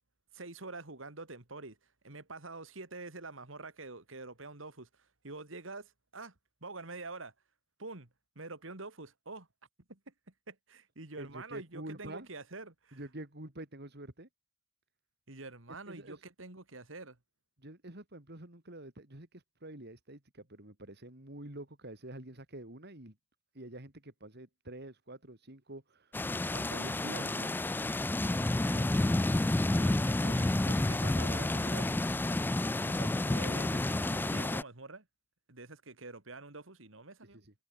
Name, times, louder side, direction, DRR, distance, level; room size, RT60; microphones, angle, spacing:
voice 1, 0.3-1.8 2.0-6.3 6.6-7.3 7.8-8.1 8.3-9.5 9.9-10.1 10.5-13.0 15.3-17.2 28.6-28.9 29.8-32.0 32.8-35.1 35.5-37.4, right 3 dB, 75° right, 2.7 m, -46 dB
voice 2, 11.2-12.3 12.9-14.3 15.9-16.2 17.6-23.2 23.5-26.1 26.5-27.6 37.3-37.5, right 1 dB, 55° right, 3.7 m, -47 dB
sound 1, 26.1-34.6, left 2 dB, 10° left, 0.3 m, -30 dB
head